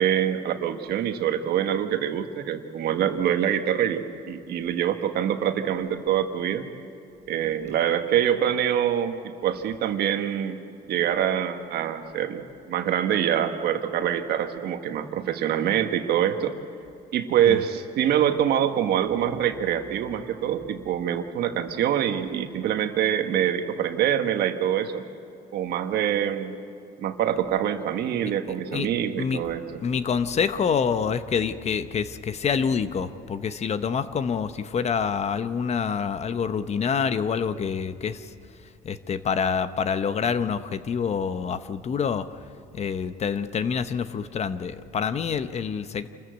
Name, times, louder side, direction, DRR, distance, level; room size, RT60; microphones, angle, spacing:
voice 1, 0.0-6.6 7.3-9.2 9.4-10.6 10.9-16.6 17.1-25.0 25.5-26.5 27.0-29.8, right 10 dB, 70° right, 7 dB, 1.4 m, -25 dB
voice 2, 29.8-38.3 38.8-42.2 42.7-46.1, left 6 dB, 40° left, 12 dB, 0.8 m, -26 dB
26.5 x 14.5 x 8.1 m, 2.6 s
cardioid pair, 110°, 17 cm